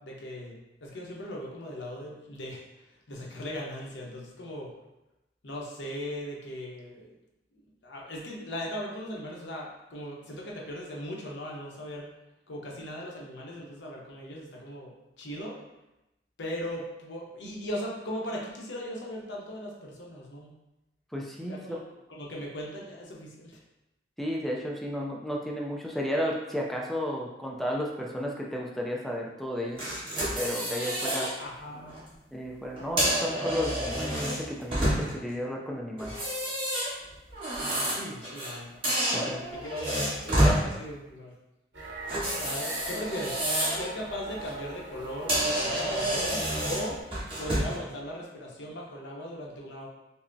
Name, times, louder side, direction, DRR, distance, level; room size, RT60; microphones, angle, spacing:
voice 1, 0.0-2.6 3.1-4.7 5.4-7.1 7.8-12.1 12.5-15.5 16.4-20.5 21.4-21.8 22.1-23.6 31.4-32.2 37.9-38.7 39.1-41.3 42.4-47.0 47.4-49.9, equal, 85° left, -2 dB, 0.8 m, -38 dB
voice 2, 21.1-21.8 24.2-29.8 30.4-31.3 32.3-36.2 39.1-39.4 40.4-40.6, equal, ahead, -2 dB, 0.4 m, -33 dB
sound 1, 29.8-31.3 31.8-32.0 32.8-35.3 36.0-38.6 38.8-40.6 42.1-43.9 44.3-44.5 45.0-45.1 45.3-47.8, equal, 30° right, 1.5 m, -29 dB
sound 2, 41.7-47.0, right 2 dB, 75° right, 0.8 m, -42 dB
5.4 x 2.0 x 2.6 m, 0.95 s
head